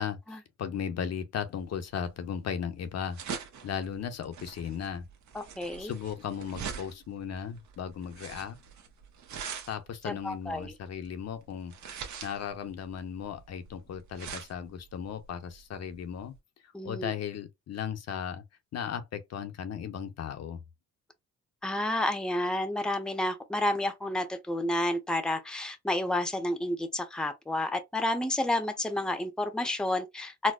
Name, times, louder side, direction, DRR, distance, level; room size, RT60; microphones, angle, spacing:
voice 1, 0.0-5.0 5.8-8.6 9.7-11.7 12.2-16.3 16.6-18.4 18.7-20.6, left 8 dB, 60° left, 0.7 m, -36 dB
sound 1, 1.6-16.4, right 7 dB, 70° right, 0.9 m, -43 dB
voice 2, 5.3-5.9 10.1-10.7 16.7-17.1 21.6-30.5, left 1 dB, 5° left, 0.6 m, -30 dB
4.2 x 2.0 x 2.3 m
cardioid pair, 90°, 30 cm